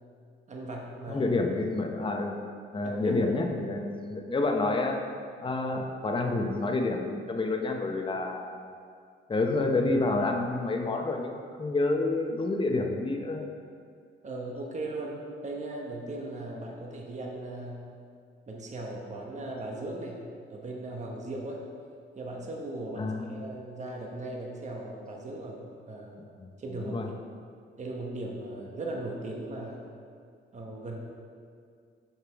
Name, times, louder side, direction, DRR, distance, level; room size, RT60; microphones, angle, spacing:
voice 1, 0.5-1.3 2.8-3.4 14.2-17.9 18.5-20.2 20.5-21.6 22.2-26.2 26.6-27.1 27.8-29.8 30.5-31.0, right 2 dB, 35° right, -1 dB, 1.1 m, -38 dB
voice 2, 1.1-2.4 2.7-5.0 5.4-8.7 9.3-13.4 23.0-23.3 26.4-27.1, left 2 dB, 25° left, 3 dB, 0.8 m, -29 dB
6.9 x 5.8 x 4.6 m, 2.3 s
cardioid pair, 90°, 20 cm